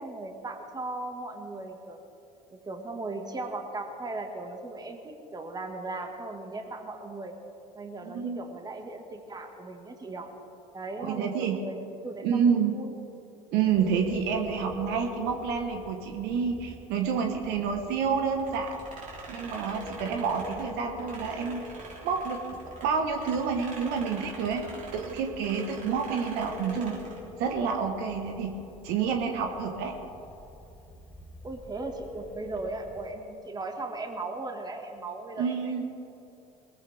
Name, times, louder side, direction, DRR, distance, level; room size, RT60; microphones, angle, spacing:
voice 1, 0.0-2.0 2.5-7.3 7.8-10.3 10.7-12.4 12.7-12.9 31.4-35.8, right 2 dB, 20° right, 4 dB, 1.9 m, -38 dB
voice 2, 8.0-8.4 11.0-11.5 12.2-12.7 13.5-18.8 19.3-21.6 22.0-22.4 22.8-24.6 24.9-26.9 27.4-28.5 28.8-30.0 35.4-35.8, right 6 dB, 65° right, 4 dB, 1.4 m, -28 dB
Telephone, 13.7-33.1, left 1 dB, 5° left, 3.7 m, -45 dB
sound 1, 18.4-22.9 23.2-27.3, right 3 dB, 45° right, 3.8 m, -45 dB
20.5 x 14.5 x 3.6 m, 2.8 s
hypercardioid pair, 75°, 18 cm